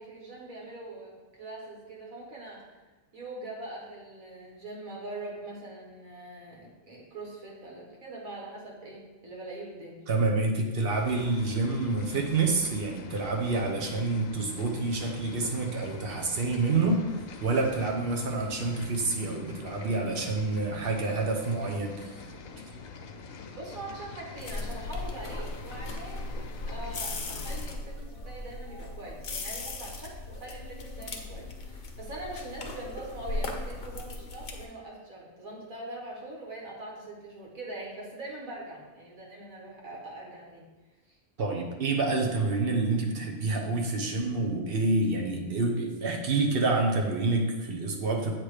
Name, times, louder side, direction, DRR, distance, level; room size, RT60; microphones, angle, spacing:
voice 1, 0.0-2.6 3.1-10.0 23.5-26.4 26.6-40.7 41.1-41.2, right 2 dB, 85° right, -3 dB, 1.8 m, -42 dB
voice 2, 10.1-17.0 17.4-22.2 41.4-48.3, right 3 dB, 50° right, 1 dB, 0.9 m, -28 dB
sound 1, 10.9-27.8, left 5 dB, 80° left, 1.0 m, -45 dB
sound 2, 24.4-34.7, left 2 dB, 50° left, 0.7 m, -38 dB
8.0 x 3.0 x 4.9 m, 1.2 s
omnidirectional pair, 1.4 m